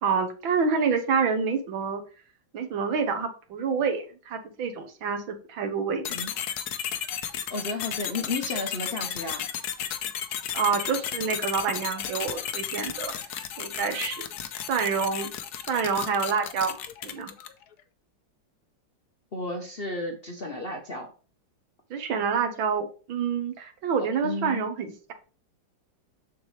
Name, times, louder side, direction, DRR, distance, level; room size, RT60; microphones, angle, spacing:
voice 1, 0.0-2.0 2.5-6.0 10.5-13.1 13.6-14.3 14.7-15.3 15.7-16.7 17.0-17.3 21.9-25.1, right 5 dB, 85° right, 5 dB, 2.0 m, -27 dB
sound 1, 6.0-17.6, left 9 dB, 65° left, 1.1 m, -34 dB
voice 2, 7.5-9.4 19.3-21.1 24.0-24.6, left 2 dB, 45° left, 2 dB, 0.7 m, -33 dB
7.1 x 6.6 x 3.2 m, 0.36 s
omnidirectional pair, 2.1 m